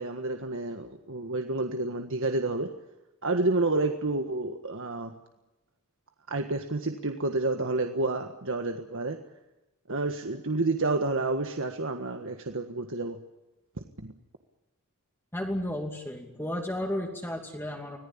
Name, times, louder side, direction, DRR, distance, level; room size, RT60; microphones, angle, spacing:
voice 1, 0.0-2.7 3.2-5.1 6.3-9.2 9.9-13.2 14.0-14.1, right 2 dB, 60° right, 5 dB, 1.6 m, -29 dB
voice 2, 15.3-18.0, left 1 dB, 10° left, 1 dB, 2.7 m, -33 dB
26.0 x 19.0 x 8.7 m, 1.0 s
head